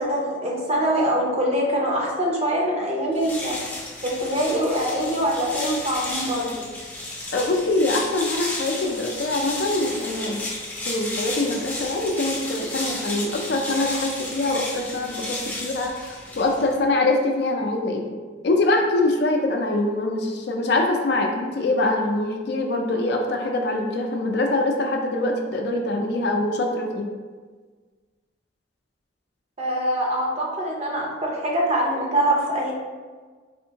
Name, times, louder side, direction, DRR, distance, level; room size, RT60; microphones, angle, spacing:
voice 1, 0.0-3.5 4.0-6.6 29.6-32.7, right 1 dB, 35° right, -2 dB, 0.6 m, -24 dB
sound 1, 3.1-16.8, left 2 dB, 10° left, 0.5 m, -33 dB
voice 2, 7.3-10.4 10.9-18.0 18.4-27.1, left 2 dB, 60° left, 2 dB, 0.4 m, -24 dB
4.2 x 2.6 x 2.8 m, 1.5 s
head